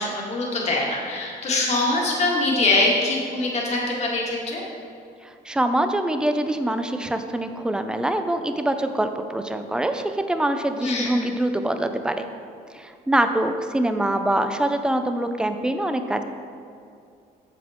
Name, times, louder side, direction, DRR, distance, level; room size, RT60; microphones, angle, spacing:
voice 1, 0.0-4.6 10.8-11.2, left 2 dB, 40° left, -3 dB, 1.9 m, -23 dB
voice 2, 5.2-12.3 12.7-16.2, right 1 dB, 5° right, 7 dB, 0.4 m, -24 dB
7.4 x 7.3 x 3.6 m, 2.4 s
cardioid pair, 110°, 17 cm